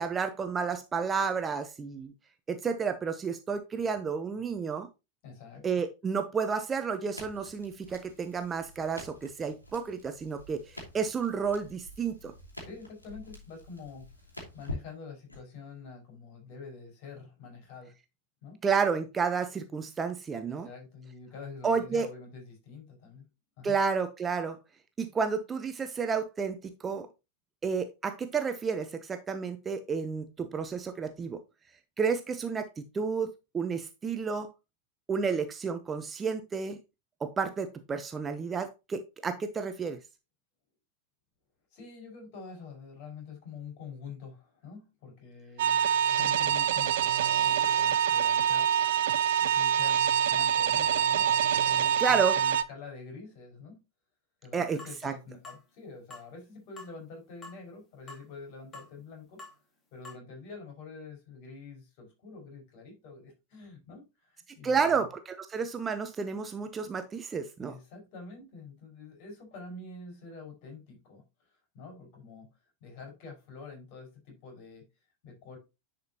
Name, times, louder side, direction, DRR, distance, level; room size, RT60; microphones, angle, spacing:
voice 1, 0.0-2.1 2.5-4.9 5.6-12.3 18.6-20.7 21.6-22.1 23.6-24.6 25.0-27.1 27.6-31.4 32.0-34.5 35.1-36.8 37.2-40.0 52.0-52.3 54.5-55.1 64.6-67.7, right 5 dB, 20° right, 0.8 m, -31 dB
voice 2, 5.2-5.7 12.6-14.1 14.5-17.9 18.4-18.6 20.5-23.3 23.6-23.8 41.7-45.8 46.2-47.1 47.4-48.7 49.4-51.3 51.6-53.8 54.4-59.4 59.9-65.0 67.6-71.2 71.7-72.5 72.8-74.9 75.2-75.6, left 4 dB, 45° left, 5.3 m, -46 dB
Crackle, 7.1-15.4, left 1 dB, 85° left, 2.8 m, -47 dB
sound 1, 45.6-52.6, right 9 dB, 55° right, 0.5 m, -25 dB
sound 2, 54.8-55.0 55.4-55.6 56.1-56.3 56.8-56.9 57.4-57.6 58.1-58.3 58.7-58.9 59.4-59.6 60.0-60.1, left 2 dB, 20° left, 2.8 m, -46 dB
10.5 x 5.2 x 2.9 m
figure-of-eight pair, 90°, 0 cm